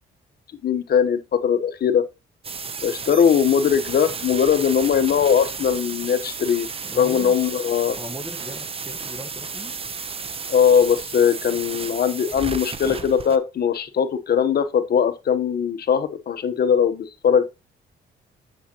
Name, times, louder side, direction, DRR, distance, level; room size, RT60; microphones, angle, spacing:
voice 1, 0.6-2.0 2.8-6.7 7.0-8.0 10.5-17.4, left 7 dB, 50° left, 1.0 m, -20 dB
sound 1, 2.4-13.4, right 5 dB, 30° right, 0.7 m, -33 dB
voice 2, 6.8-7.3 7.9-9.8, equal, 10° right, 1.3 m, -38 dB
7.1 x 7.0 x 2.9 m
cardioid pair, 90°, 20 cm